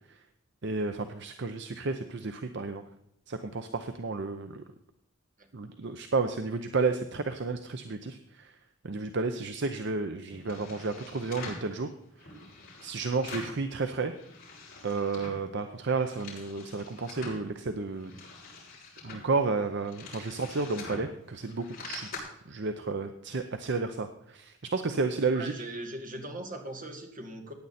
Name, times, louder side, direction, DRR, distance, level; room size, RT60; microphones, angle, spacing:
voice 1, 0.6-2.8 3.3-4.6 5.5-8.5 8.8-11.9 12.8-14.1 14.8-18.1 19.0-22.1 22.5-25.5, right 4 dB, 60° right, 8 dB, 0.7 m, -32 dB
sound 1, 10.3-11.7 12.2-13.6 13.9-15.5 15.8-17.4 17.9-22.2, left 3 dB, 45° left, 6.4 m, -45 dB
voice 2, 25.3-27.5, right 1 dB, 40° right, 3 dB, 2.0 m, -39 dB
15.5 x 9.6 x 4.2 m, 0.77 s
head